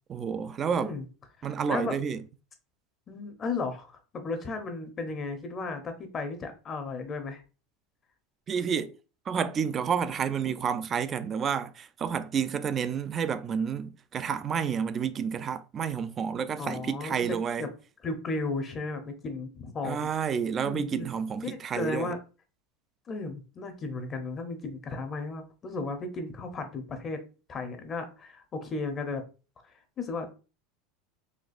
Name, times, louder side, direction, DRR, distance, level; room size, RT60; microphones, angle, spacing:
voice 1, 0.1-1.0 1.4-2.2 8.5-8.9 9.3-17.7 19.8-22.1, right 7 dB, 30° right, 0.3 m, -30 dB
voice 2, 3.1-7.4 16.6-17.7 18.0-20.1 20.6-21.1 21.4-22.2 23.1-27.2 27.5-29.2 30.0-30.3, left 3 dB, 30° left, 0.7 m, -34 dB
4.2 x 2.3 x 2.4 m
supercardioid pair, 125°, 0 cm